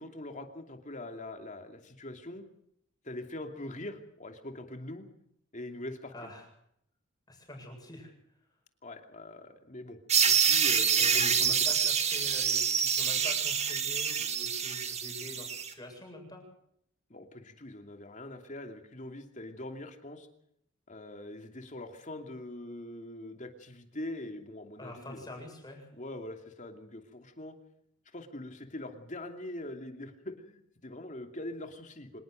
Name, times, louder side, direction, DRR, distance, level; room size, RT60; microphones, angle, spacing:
voice 1, 0.0-2.4 3.0-5.1 5.5-6.1 8.8-10.0 10.2-11.5 17.1-20.3 20.9-25.3 25.9-27.6 28.1-32.2, left 1 dB, 35° left, 5 dB, 2.7 m, -43 dB
voice 2, 6.1-6.5 7.3-8.1 11.0-16.4 24.8-25.9, left 1 dB, 20° left, 2 dB, 7.7 m, -45 dB
sound 1, 10.1-15.7, right 7 dB, 30° right, 2.2 m, -27 dB
26.0 x 19.5 x 6.5 m, 0.71 s
head